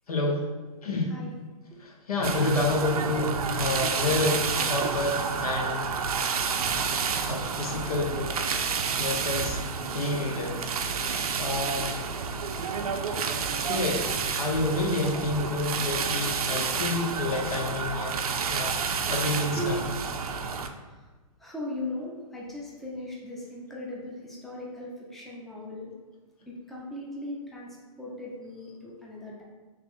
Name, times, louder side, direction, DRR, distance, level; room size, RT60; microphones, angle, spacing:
voice 1, 0.1-0.4 0.8-1.1 1.8-4.4 4.7-5.9 7.3-8.3 9.0-9.7 9.9-11.9 13.0-13.1 13.6-18.2 18.5-19.8, left 2 dB, 85° left, 0 dB, 0.8 m, -29 dB
sound 1, 2.2-5.5 5.9-10.1 10.5-10.8 11.4-11.7 12.0-12.3 12.9-13.0 13.3-13.4 14.6-14.7 15.4-16.3 17.4-17.6 18.0-18.1 18.4-18.5, equal, 50° left, 1.2 m, -36 dB
sound 2, 2.2-20.7, right 6 dB, 85° right, 0.4 m, -30 dB
voice 2, 19.5-20.0 20.9-21.1 21.4-25.9 26.5-29.4, left 1 dB, ahead, -5 dB, 0.5 m, -38 dB
3.3 x 2.9 x 3.6 m, 1.3 s
hypercardioid pair, 135°, 19 cm